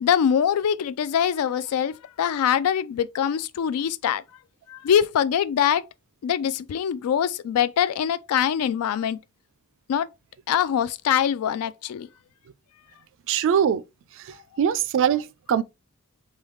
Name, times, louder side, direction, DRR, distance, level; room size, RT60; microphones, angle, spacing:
voice 1, 0.0-4.2 4.7-5.9 6.2-9.2 9.9-10.1 10.5-12.1, left 8 dB, 75° left, 0.3 m, -23 dB
voice 2, 13.3-13.8 14.6-15.6, right 8 dB, 60° right, 0.3 m, -22 dB
3.3 x 2.3 x 3.0 m
head